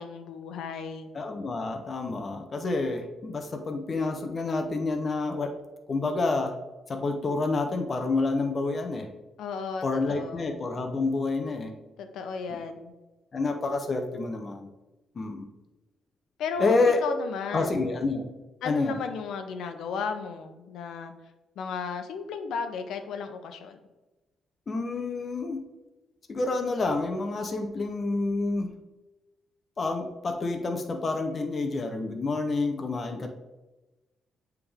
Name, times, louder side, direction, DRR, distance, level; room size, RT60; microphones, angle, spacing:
voice 1, 0.0-1.1 9.4-10.4 12.0-12.9 16.4-16.7 17.0-17.9 18.6-21.1 21.6-23.8, left 5 dB, 80° left, 7 dB, 0.7 m, -34 dB
voice 2, 1.1-5.5 5.9-6.5 6.9-9.1 9.8-11.7 12.5-12.6 13.3-14.7 15.2-15.5 16.6-17.0 17.5-18.3 18.6-19.0 24.7-25.6 26.3-28.7 29.8-33.3, left 3 dB, 35° left, 5 dB, 0.6 m, -28 dB
8.9 x 3.4 x 3.4 m, 1.1 s
cardioid pair, 140°, 0 cm